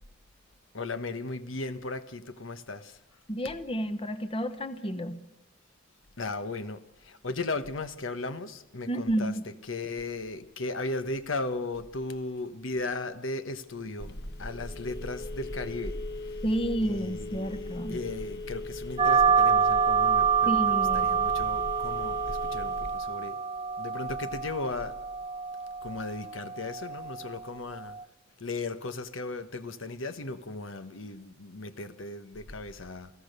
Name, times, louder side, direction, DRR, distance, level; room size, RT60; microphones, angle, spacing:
voice 1, 0.7-3.0 6.2-9.3 9.7-14.1 14.4-16.0 16.8-23.4 23.8-24.9 25.8-28.0 28.4-33.1, left 2 dB, 85° left, 11 dB, 1.2 m, -36 dB
voice 2, 3.3-5.2 8.9-9.4 16.4-18.0 20.5-21.2, right 1 dB, 30° left, 12 dB, 1.0 m, -31 dB
Telephone, 14.0-23.0, left 2 dB, 60° left, 1.5 m, -38 dB
sound 1, 19.0-28.0, right 7 dB, 30° right, 0.7 m, -27 dB
29.0 x 16.5 x 6.7 m, 0.86 s
head